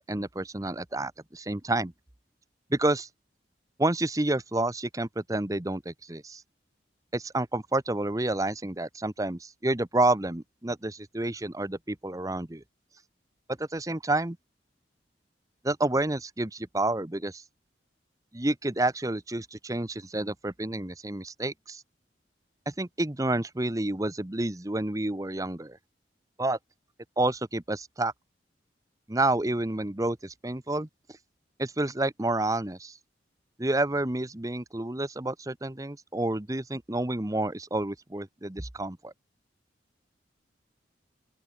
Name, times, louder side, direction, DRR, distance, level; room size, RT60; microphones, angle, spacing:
voice 1, 0.1-1.9 2.7-3.1 3.8-6.4 7.1-12.6 13.6-14.4 15.6-17.4 18.3-21.8 22.7-25.8 26.4-26.6 27.2-28.1 29.1-30.9 31.6-33.0 33.6-39.1, right 2 dB, 20° right, 1.0 m, -29 dB
open air
head